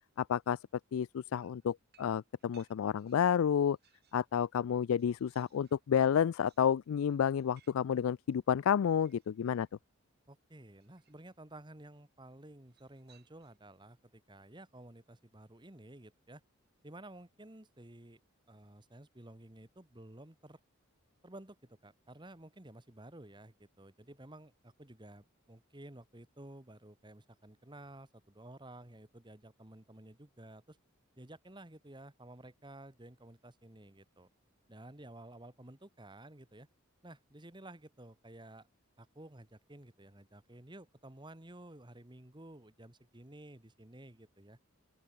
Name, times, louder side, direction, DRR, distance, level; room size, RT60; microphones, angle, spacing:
voice 1, 0.2-0.6 0.9-3.8 4.1-9.7, left 8 dB, 75° left, 0.3 m, -30 dB
sound 1, 1.4-4.3 4.7-9.7 10.8-11.4 12.7-13.7, right 9 dB, 50° right, 6.4 m, -71 dB
voice 2, 10.3-16.4 16.8-18.2 18.5-20.6 21.2-30.8 31.2-34.3 34.7-36.7 37.0-38.7 39.0-44.6, right 1 dB, 20° right, 1.5 m, -53 dB
open air
head